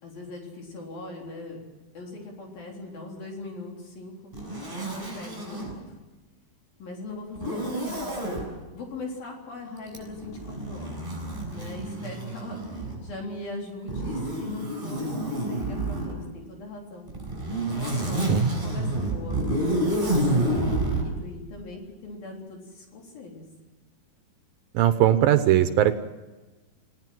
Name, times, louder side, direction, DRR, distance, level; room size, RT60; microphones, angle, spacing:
voice 1, 0.0-1.6 1.9-4.3 4.7-5.8 6.8-8.5 8.7-11.1 11.5-17.1 17.7-23.4, left 2 dB, 65° left, 0 dB, 5.4 m, -40 dB
Zipper (clothing), 4.3-5.7 7.3-8.4 9.9-13.1 13.9-16.1 17.1-21.1, right 1 dB, 10° right, 7.6 m, -28 dB
voice 2, 24.7-26.0, right 12 dB, 75° right, 10 dB, 2.4 m, -20 dB
29.0 x 17.5 x 7.7 m, 1.2 s
omnidirectional pair, 4.5 m